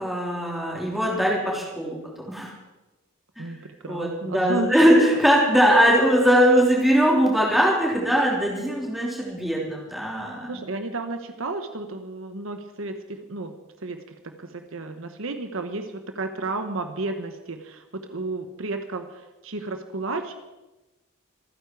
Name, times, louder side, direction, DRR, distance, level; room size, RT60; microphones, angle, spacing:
voice 1, 0.0-2.0 2.3-2.5 3.4-3.5 3.9-10.6, equal, ahead, -3 dB, 3.6 m, -20 dB
voice 2, 3.4-4.9 10.5-13.5 13.8-17.8 18.1-20.3, right 2 dB, 65° right, 7 dB, 1.1 m, -32 dB
26.0 x 9.8 x 4.7 m, 1.1 s
head